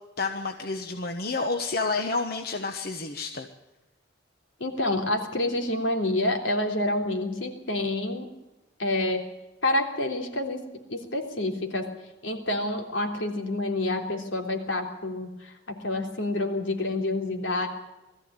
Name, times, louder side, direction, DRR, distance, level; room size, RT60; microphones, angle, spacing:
voice 1, 0.2-3.5, left 3 dB, 50° left, 5 dB, 1.2 m, -29 dB
voice 2, 4.6-8.3 8.8-9.2 9.6-10.6 10.9-11.9 12.2-17.7, left 1 dB, 75° left, 3 dB, 3.4 m, -28 dB
21.0 x 14.5 x 8.9 m, 1.0 s
head